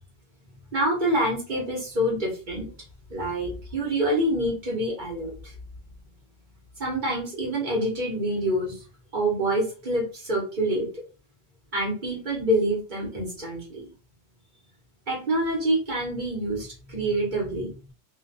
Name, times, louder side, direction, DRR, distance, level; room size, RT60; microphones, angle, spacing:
voice 1, 0.7-2.7 3.1-5.5 6.8-8.8 9.1-10.9 11.7-13.8 15.1-17.7, right 1 dB, 45° right, -3 dB, 0.9 m, -26 dB
2.4 x 2.2 x 2.5 m, 0.35 s
omnidirectional pair, 1.3 m